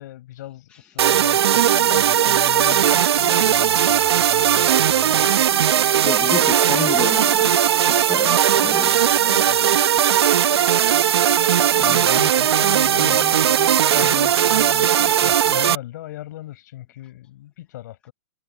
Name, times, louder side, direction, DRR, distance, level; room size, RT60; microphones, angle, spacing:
voice 1, 0.0-5.6 8.4-9.6 11.7-18.1, left 14 dB, 35° left, 5.4 m, -38 dB
sound 1, 1.0-15.8, right 10 dB, 55° right, 1.2 m, -18 dB
voice 2, 6.0-7.5 7.8-8.9 10.7-10.9 11.8-12.0 14.2-14.3, left 8 dB, 10° left, 0.7 m, -31 dB
hypercardioid pair, 175°, 16 cm